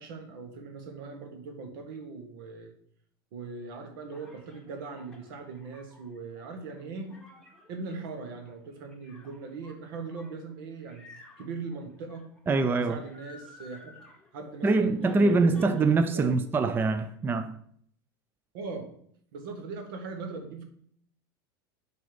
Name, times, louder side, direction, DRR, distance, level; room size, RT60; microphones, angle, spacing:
voice 1, 0.0-2.7 3.3-7.1 7.7-11.1 11.4-12.3 12.6-14.0 14.3-16.5 18.5-18.9 19.3-20.6, right 4 dB, 75° right, 1.6 m, -40 dB
sound 1, 4.1-16.3 16.6-17.4, left 2 dB, 5° left, 1.9 m, -55 dB
voice 2, 12.5-13.0 14.6-17.6, right 3 dB, 20° right, 0.4 m, -24 dB
7.7 x 4.2 x 5.1 m
supercardioid pair, 115°, 12 cm